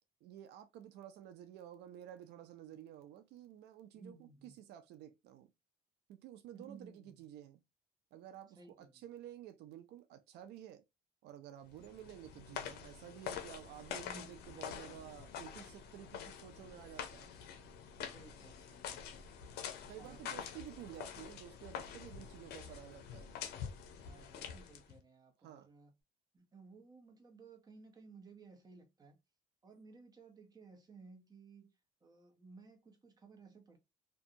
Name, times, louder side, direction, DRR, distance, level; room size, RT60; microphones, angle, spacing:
voice 1, 0.2-5.5 6.1-7.6 8.1-10.8 11.2-17.4 19.9-23.4 25.4-25.7, right 11 dB, 80° right, 0.4 m, -52 dB
voice 2, 3.9-4.5 6.5-7.1 8.6-9.0 14.0-14.4 18.0-19.7 20.0-20.4 24.0-25.9 26.3-29.2 29.6-31.7 32.0-33.8, right 4 dB, 25° right, 0.9 m, -58 dB
sound 1, 11.7-25.0, left 8 dB, 75° left, 0.6 m, -47 dB
2.6 x 2.3 x 2.7 m
cardioid pair, 110°, 17 cm